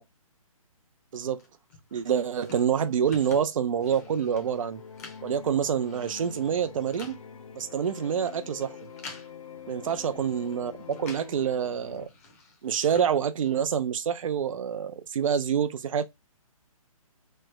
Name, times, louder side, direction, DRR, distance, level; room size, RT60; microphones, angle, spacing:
sound 1, 1.4-11.4 11.7-13.8, left 4 dB, 25° left, 0.7 m, -50 dB
voice 1, 1.9-4.8 5.2-7.2 7.5-8.8 9.7-12.1 12.6-16.0, right 8 dB, 65° right, 0.4 m, -27 dB
sound 2, 3.7-12.1, left 6 dB, 70° left, 0.6 m, -45 dB
3.1 x 2.1 x 3.3 m
hypercardioid pair, 160°, 18 cm